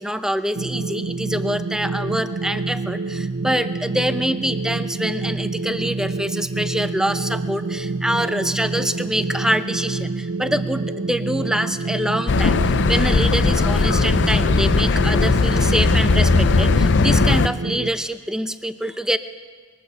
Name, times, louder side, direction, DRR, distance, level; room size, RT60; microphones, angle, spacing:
voice 1, 0.0-19.2, equal, 5° right, 9 dB, 0.8 m, -25 dB
sound 1, 0.5-17.9, right 3 dB, 60° right, 0.7 m, -27 dB
sound 2, 12.3-17.5, left 4 dB, 50° left, 0.6 m, -18 dB
21.5 x 19.0 x 8.1 m, 1.5 s
head